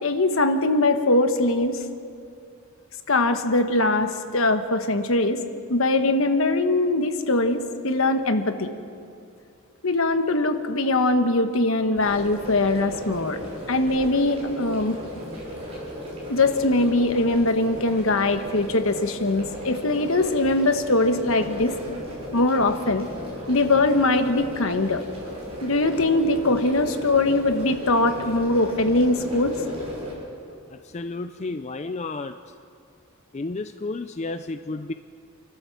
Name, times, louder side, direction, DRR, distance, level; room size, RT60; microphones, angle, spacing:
voice 1, 0.0-1.8 3.1-5.4 5.7-8.7 9.8-13.4 13.7-15.0 16.3-21.7 22.3-23.1 23.5-25.0 25.6-29.5, left 2 dB, 65° left, 7 dB, 1.3 m, -22 dB
sound 1, 11.9-30.1, equal, 25° right, 6.1 m, -36 dB
voice 2, 30.9-32.4 33.3-34.9, left 3 dB, 30° left, 9 dB, 0.4 m, -31 dB
29.0 x 12.5 x 7.2 m, 2.5 s
head